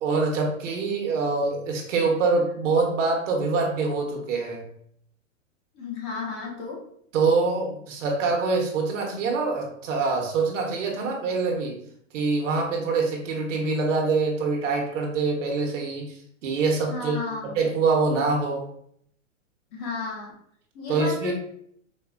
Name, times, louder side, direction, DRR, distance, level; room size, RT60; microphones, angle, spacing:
voice 1, 0.0-4.6 7.1-11.8 12.1-17.2 17.5-18.6 20.9-21.3, right 4 dB, 65° right, 1 dB, 1.0 m, -25 dB
voice 2, 5.7-6.8 16.9-17.6 19.7-20.3 20.7-21.3, left 4 dB, 35° left, -2 dB, 1.1 m, -33 dB
4.2 x 2.3 x 2.4 m, 0.68 s
hypercardioid pair, 140°, 40 cm